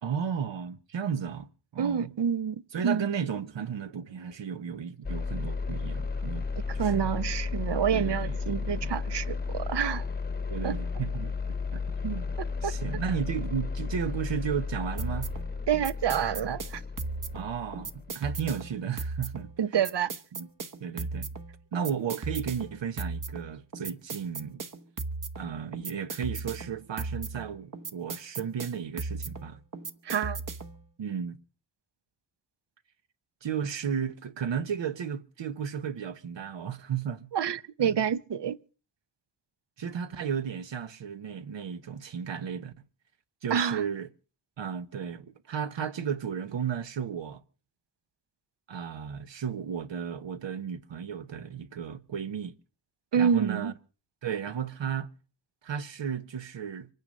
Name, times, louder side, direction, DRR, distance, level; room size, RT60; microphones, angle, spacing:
voice 1, 0.0-2.1 2.7-6.5 6.7-7.1 7.9-9.0 10.5-12.3 12.6-15.3 17.3-19.5 20.3-20.5 20.8-21.3 21.7-24.6 25.4-29.6 31.0-31.4 33.4-37.3 37.8-38.0 39.8-42.7 43.4-44.1 44.6-47.4 48.7-52.5 53.1-53.7 54.2-55.1 55.6-56.9, right 7 dB, 85° right, 1.3 m, -34 dB
voice 2, 1.8-3.1 6.5-10.0 10.6-10.8 12.6-12.7 15.7-16.8 19.6-20.1 30.0-30.4 37.3-38.6 43.5-43.8 53.1-53.7, right 8 dB, 70° right, 0.8 m, -28 dB
sound 1, 5.0-18.1, left 4 dB, 20° left, 0.9 m, -33 dB
sound 2, 15.0-30.8, right 3 dB, 45° right, 1.3 m, -37 dB
25.5 x 9.5 x 5.3 m
wide cardioid pair, 135°, 43 cm